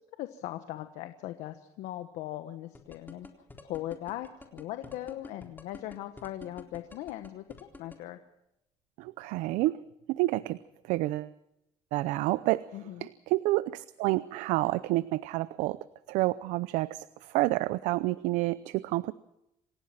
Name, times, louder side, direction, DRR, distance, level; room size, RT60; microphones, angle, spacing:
voice 1, 0.2-3.3 3.6-8.2 12.7-13.1, left 14 dB, 80° left, 8 dB, 1.4 m, -39 dB
sound 1, 2.7-8.0, left 2 dB, 15° left, 3.8 m, -47 dB
voice 2, 9.0-9.8 10.1-10.6 10.9-11.3 11.9-12.6 13.0-15.8 16.1-17.1 17.3-19.1, right 18 dB, 85° right, 16 dB, 0.7 m, -29 dB
27.5 x 16.0 x 5.9 m, 0.86 s
cardioid pair, 110°, 12 cm